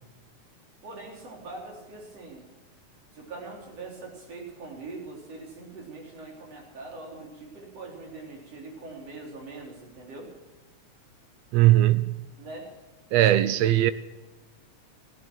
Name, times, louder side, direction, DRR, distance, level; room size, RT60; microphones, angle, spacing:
voice 1, 0.8-2.5 3.1-10.3 12.4-12.7 13.1-13.2, right 3 dB, 55° right, 4.7 m, -42 dB
voice 2, 11.5-12.2 13.1-13.9, right 14 dB, 80° right, 1.5 m, -19 dB
16.0 x 14.5 x 6.1 m
omnidirectional pair, 3.5 m